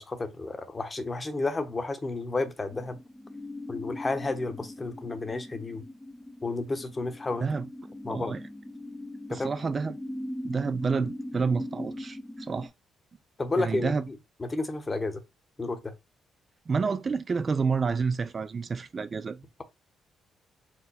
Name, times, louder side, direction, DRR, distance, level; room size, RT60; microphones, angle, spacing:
voice 1, 0.0-3.0 3.7-5.8 6.4-7.5 8.0-8.3 9.3-9.5 13.4-13.9 14.4-15.2 15.6-15.8, left 3 dB, 25° left, 1.0 m, -31 dB
sound 1, 2.7-12.7, left 1 dB, 10° left, 0.6 m, -40 dB
voice 2, 8.1-8.4 9.3-10.0 10.4-12.7 13.6-14.0 16.7-19.4, right 5 dB, 35° right, 0.3 m, -29 dB
4.5 x 2.1 x 4.1 m
cardioid pair, 90°, 0 cm